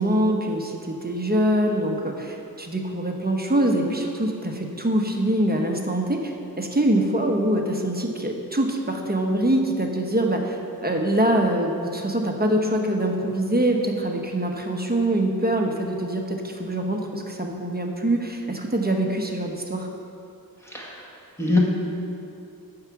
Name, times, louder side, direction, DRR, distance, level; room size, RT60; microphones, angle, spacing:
voice 1, 0.0-19.9, right 1 dB, 25° right, 2 dB, 1.0 m, -24 dB
voice 2, 20.6-21.1 21.4-21.6, left 2 dB, 5° left, -5 dB, 1.6 m, -23 dB
9.6 x 4.8 x 7.0 m, 2.6 s
wide cardioid pair, 55°, 37 cm